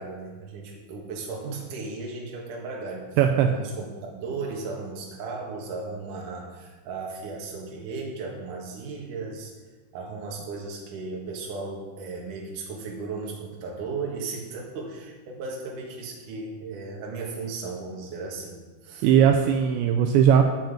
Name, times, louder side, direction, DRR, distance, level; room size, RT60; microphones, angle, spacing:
voice 1, 0.0-9.5 9.9-19.1, right 4 dB, 55° right, -1 dB, 2.7 m, -36 dB
voice 2, 3.2-3.5 19.0-20.4, right 8 dB, 85° right, 4 dB, 2.8 m, -18 dB
10.0 x 6.0 x 7.2 m, 1.3 s
omnidirectional pair, 5.4 m